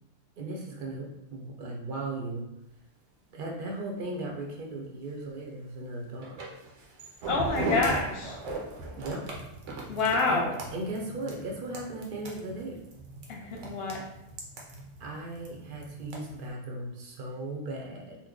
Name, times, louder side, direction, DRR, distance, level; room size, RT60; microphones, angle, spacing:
voice 1, 0.4-2.4 3.3-6.4 8.9-9.2 10.3-10.4 10.7-12.8 15.0-18.2, right 2 dB, 55° right, -1 dB, 0.7 m, -37 dB
sound 1, 6.2-16.5, right 2 dB, 75° right, 1.0 m, -38 dB
voice 2, 7.3-8.4 9.8-10.5 13.3-14.0, left 3 dB, 60° left, 1 dB, 0.8 m, -27 dB
3.0 x 2.1 x 3.6 m, 0.87 s
omnidirectional pair, 1.3 m